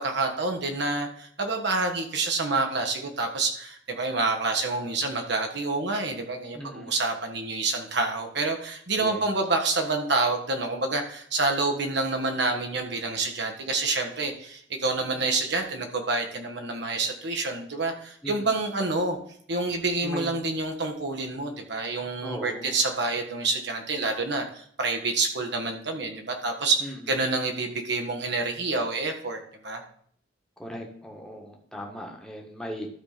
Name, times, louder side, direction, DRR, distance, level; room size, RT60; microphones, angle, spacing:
voice 1, 0.0-19.2 19.5-29.8, right 3 dB, 60° right, 3 dB, 1.5 m, -28 dB
voice 2, 6.5-6.9 9.0-9.3 18.2-18.5 20.0-20.3 22.2-22.7 26.8-27.1 30.6-32.9, equal, 5° left, 0 dB, 1.5 m, -38 dB
12.5 x 4.3 x 5.1 m, 0.62 s
head